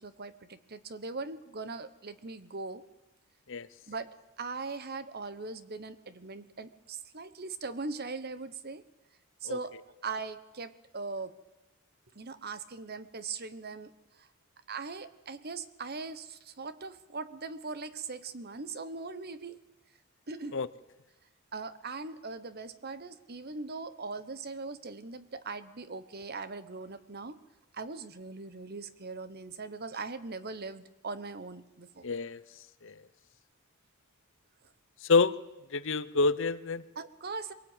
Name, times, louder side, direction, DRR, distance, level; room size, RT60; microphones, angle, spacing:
voice 1, 0.0-2.8 3.9-4.1 4.4-8.8 9.4-9.8 10.0-11.3 12.1-13.9 14.2-14.3 14.7-19.6 20.3-20.6 21.5-27.4 27.7-32.1 36.9-37.5, right 4 dB, 45° right, 14 dB, 1.1 m, -40 dB
voice 2, 32.0-32.4 32.8-32.9 35.1-35.3 35.7-36.8, left 4 dB, 55° left, 16 dB, 0.8 m, -27 dB
23.5 x 18.0 x 9.0 m, 0.98 s
head